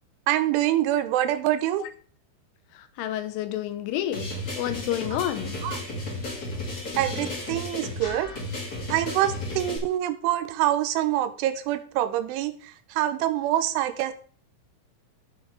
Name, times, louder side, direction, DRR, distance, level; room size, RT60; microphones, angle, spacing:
voice 1, 0.3-1.9 5.6-5.8 7.0-8.3 8.9-14.1, right 13 dB, 85° right, 11 dB, 3.0 m, -25 dB
voice 2, 3.0-4.3 4.6-5.6, left 12 dB, 80° left, 11 dB, 3.2 m, -29 dB
sound 1, 4.1-9.8, left 1 dB, 35° left, 1.5 m, -33 dB
14.5 x 6.4 x 3.4 m, 0.43 s
omnidirectional pair, 5.7 m